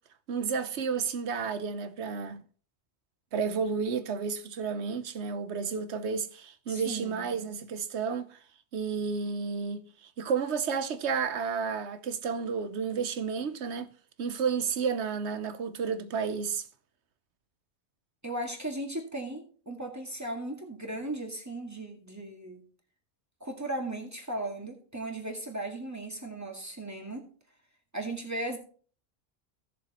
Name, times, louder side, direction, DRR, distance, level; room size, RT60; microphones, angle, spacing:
voice 1, 0.3-2.4 3.3-8.4 8.7-13.9 14.2-16.7, right 6 dB, 85° right, 1.1 m, -31 dB
voice 2, 6.7-7.3 18.2-22.7 23.4-27.3 27.9-28.6, right 1 dB, 15° right, 1.9 m, -37 dB
16.5 x 6.9 x 3.0 m
omnidirectional pair, 1.1 m